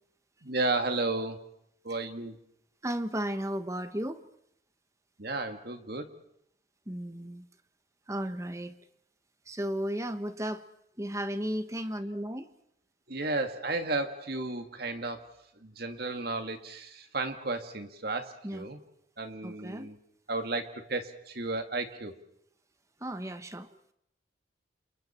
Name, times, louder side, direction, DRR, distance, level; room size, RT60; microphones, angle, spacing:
voice 1, 0.4-1.4 1.8-2.4 5.2-6.1 13.1-15.3 15.6-18.8 19.2-20.0 20.3-22.1, right 2 dB, 50° right, 6 dB, 2.1 m, -33 dB
voice 2, 2.8-4.3 6.9-7.5 8.1-8.7 9.5-10.6 11.0-12.5 18.4-18.6 19.4-19.9 23.0-23.7, equal, 15° right, 10 dB, 1.1 m, -34 dB
29.0 x 28.5 x 4.5 m, 0.75 s
head